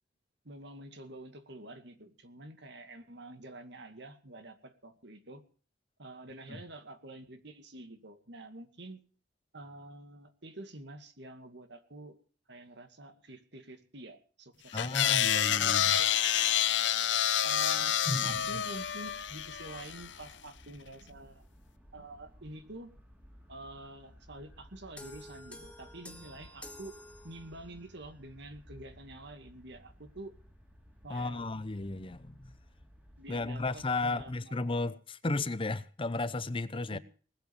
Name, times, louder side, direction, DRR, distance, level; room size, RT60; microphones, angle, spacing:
voice 1, 0.4-5.4 6.0-9.0 9.5-12.2 12.5-16.1 17.4-21.5 21.9-22.9 23.5-30.4 31.0-31.7 33.2-34.6 36.9-37.0, right 2 dB, 65° right, 2.3 m, -48 dB
voice 2, 14.7-16.0 18.1-18.4 31.1-32.5 33.3-37.0, left 2 dB, 30° left, 0.7 m, -34 dB
sound 1, 14.8-20.1, left 10 dB, 70° left, 0.8 m, -28 dB
sound 2, 18.2-34.4, equal, 10° right, 3.2 m, -57 dB
sound 3, 25.0-27.8, left 1 dB, 5° left, 1.9 m, -50 dB
19.5 x 8.4 x 7.2 m
head